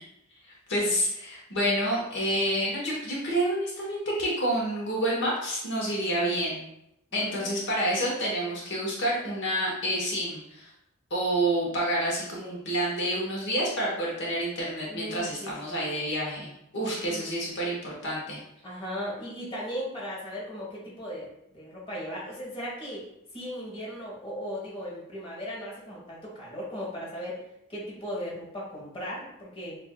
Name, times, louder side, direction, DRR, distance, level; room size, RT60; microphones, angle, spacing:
voice 1, 0.7-6.6 7.1-10.7 11.1-18.4, right 1 dB, 55° left, -3 dB, 1.0 m, -28 dB
voice 2, 7.1-7.5 14.8-15.5 15.8-15.9 16.9-17.3 18.6-23.1 23.3-27.4 27.7-29.8, equal, 25° left, -5 dB, 1.2 m, -37 dB
7.1 x 2.6 x 2.2 m, 0.82 s
head